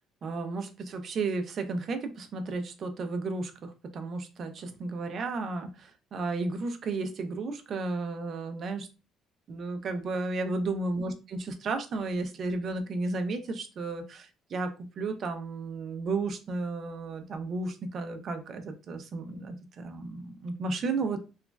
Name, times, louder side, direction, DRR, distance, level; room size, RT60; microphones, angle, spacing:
voice 1, 0.2-8.9 9.5-21.2, right 3 dB, 40° right, 7 dB, 0.4 m, -33 dB
3.0 x 2.4 x 2.2 m, 0.30 s
cardioid pair, 155°, 0 cm